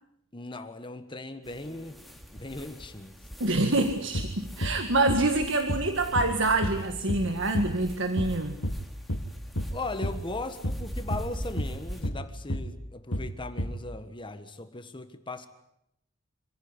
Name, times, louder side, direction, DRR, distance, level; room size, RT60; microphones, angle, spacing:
voice 1, 0.3-2.0 2.3-3.1 9.7-15.5, left 2 dB, 25° left, 9 dB, 1.4 m, -38 dB
sound 1, 1.4-12.1, equal, ahead, 2.4 m, -44 dB
voice 2, 3.4-8.6, right 2 dB, 65° right, 6 dB, 1.8 m, -26 dB
sound 2, 4.1-4.4 4.6-4.8 5.1-5.3 5.7-5.9 6.2-6.4 6.6-6.8 7.1-7.3 7.5-7.8 8.2-8.4 8.6-8.8 9.1-9.3 9.6-9.8 10.0-10.2 10.6-10.8 11.1-11.3 11.6-11.8 12.0-12.2 12.5-12.7 13.1-13.3 13.6-13.8, equal, 70° left, 2.1 m, -31 dB
26.0 x 16.0 x 9.7 m, 0.79 s
head